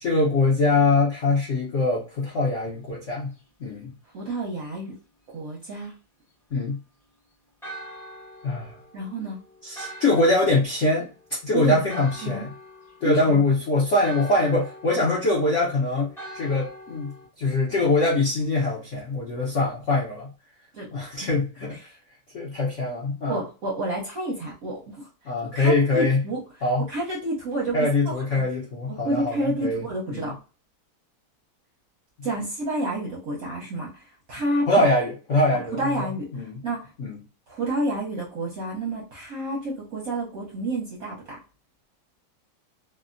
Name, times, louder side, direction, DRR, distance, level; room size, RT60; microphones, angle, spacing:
voice 1, 0.0-3.3 3.6-3.9 6.5-6.8 8.4-8.8 9.6-11.1 11.4-12.5 13.0-20.3 20.9-21.9 22.3-23.4 25.2-26.2 26.6-26.9 27.7-29.8 30.1-30.3 34.7-36.1 36.3-36.6 37.0-37.2, left 2 dB, 80° left, -4 dB, 0.6 m, -23 dB
voice 2, 4.1-5.0 5.3-5.9 8.9-9.4 11.5-11.8 12.2-12.4 13.0-13.4 20.7-20.9 21.2-21.3 21.7-21.9 23.3-26.4 26.9-28.4 28.9-30.4 32.2-34.7 35.5-36.9 37.5-41.4, right 1 dB, 60° right, -4 dB, 0.9 m, -30 dB
Church bell, 7.6-17.3, right 1 dB, 5° left, 0.4 m, -43 dB
3.5 x 2.1 x 2.5 m, 0.34 s
omnidirectional pair, 2.4 m